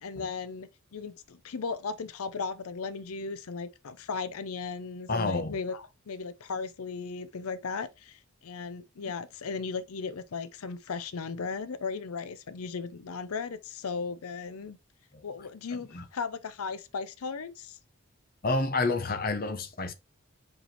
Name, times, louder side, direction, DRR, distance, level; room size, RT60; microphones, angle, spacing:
voice 1, 0.0-14.8 15.2-17.8, left 5 dB, 85° left, 0.6 m, -36 dB
voice 2, 5.1-5.6 15.1-15.2 15.7-16.0 18.4-19.9, left 3 dB, 40° left, 0.8 m, -29 dB
5.2 x 4.7 x 4.3 m
head